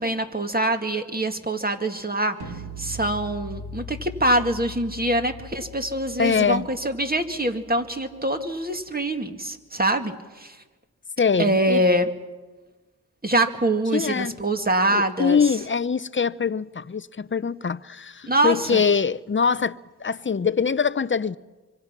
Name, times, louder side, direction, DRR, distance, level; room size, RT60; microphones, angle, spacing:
voice 1, 0.0-10.6 11.4-12.1 13.2-15.5 18.3-18.8, right 1 dB, 25° right, 2.2 m, -24 dB
sound 1, 2.4-8.4, left 1 dB, 75° right, 3.7 m, -40 dB
voice 2, 6.2-6.7 11.2-11.8 13.9-14.4 14.9-21.4, left 6 dB, 30° left, 0.7 m, -23 dB
25.5 x 25.0 x 6.0 m
cardioid pair, 50°, 39 cm